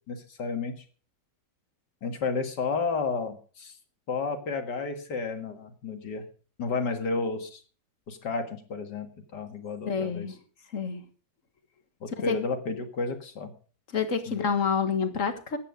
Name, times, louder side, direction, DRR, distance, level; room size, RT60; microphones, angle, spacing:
voice 1, 0.1-0.7 2.0-3.7 4.1-6.2 6.6-7.6 8.1-9.1 9.3-10.3 12.0-13.5 14.3-14.5, left 4 dB, 65° left, 6 dB, 2.4 m, -31 dB
voice 2, 9.9-10.3 10.7-11.0 12.3-12.4 13.9-15.6, left 6 dB, 45° left, 9 dB, 1.8 m, -28 dB
14.0 x 9.5 x 5.2 m, 0.39 s
omnidirectional pair, 2.0 m